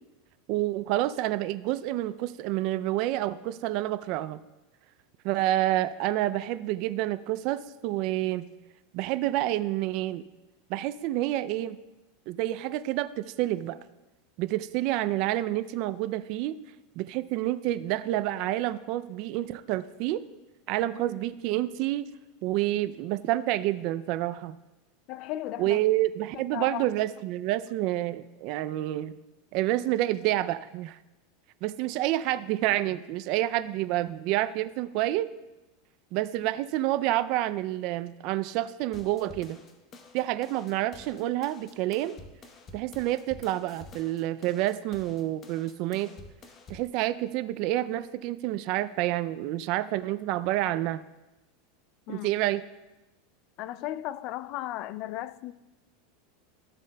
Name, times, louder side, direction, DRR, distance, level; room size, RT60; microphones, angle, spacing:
voice 1, 0.5-4.4 5.2-8.5 8.9-10.2 10.7-11.8 12.3-13.8 14.4-16.6 17.0-20.2 20.7-22.1 22.4-24.5 25.6-29.2 29.5-31.0 31.6-35.3 36.1-39.6 40.1-42.2 42.7-46.1 46.7-51.0 52.1-52.6, right 15 dB, 55° right, 0.3 m, -28 dB
voice 2, 25.1-25.8 26.3-26.9 52.1-52.3 53.6-55.5, left 14 dB, 50° left, 0.3 m, -35 dB
sound 1, 38.9-46.9, left 2 dB, 30° left, 0.9 m, -50 dB
13.5 x 7.4 x 2.2 m
supercardioid pair, 135°, 0 cm